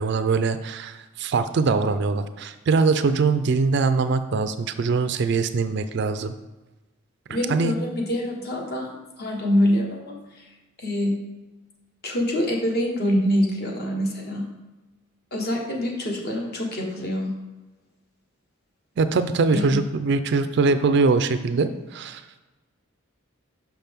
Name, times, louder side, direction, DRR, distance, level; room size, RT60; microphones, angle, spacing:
voice 1, 0.0-6.3 7.5-7.7 19.0-22.4, right 4 dB, 55° right, 11 dB, 0.4 m, -22 dB
voice 2, 7.3-10.5 10.8-11.3 12.0-14.6 15.3-17.4 19.5-19.9, equal, 50° left, 0 dB, 1.3 m, -25 dB
5.9 x 5.7 x 3.5 m, 1.1 s
head